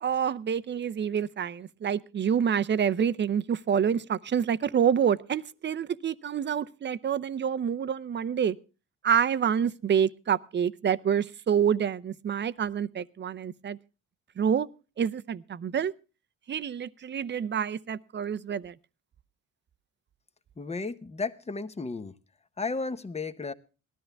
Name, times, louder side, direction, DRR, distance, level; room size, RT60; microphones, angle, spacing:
voice 1, 0.0-8.6 9.0-13.8 14.4-14.7 15.0-15.9 16.5-18.7, right 8 dB, 35° right, 0.6 m, -27 dB
voice 2, 20.6-22.1 22.6-23.5, left 4 dB, 20° left, 0.9 m, -33 dB
18.5 x 13.0 x 3.4 m
cardioid pair, 90°, 30 cm